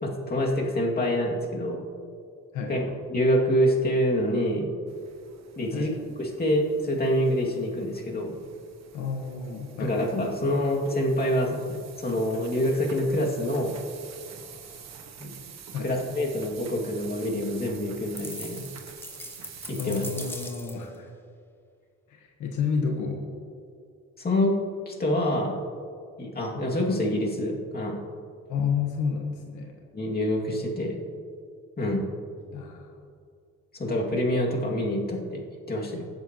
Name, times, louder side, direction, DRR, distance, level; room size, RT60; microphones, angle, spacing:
voice 1, 0.0-1.8 2.7-2.8 3.1-4.7 5.6-5.9 6.2-8.3 9.8-13.8 15.2-15.3 15.8-18.6 19.7-20.0 24.2-24.6 24.9-25.6 26.2-28.0 29.9-31.0 31.8-32.1 33.7-36.1, equal, 30° left, -2 dB, 2.3 m, -26 dB
sound 1, 4.9-20.5, right 7 dB, 60° right, 1.3 m, -47 dB
voice 2, 8.9-9.9 15.7-15.9 19.8-21.1 22.1-23.3 28.5-29.8 32.4-32.9, left 6 dB, 85° left, 2 dB, 1.3 m, -31 dB
sound 2, 18.2-21.0, left 1 dB, 5° left, 1.0 m, -41 dB
20.0 x 7.8 x 3.0 m, 2.3 s
cardioid pair, 90°, 30 cm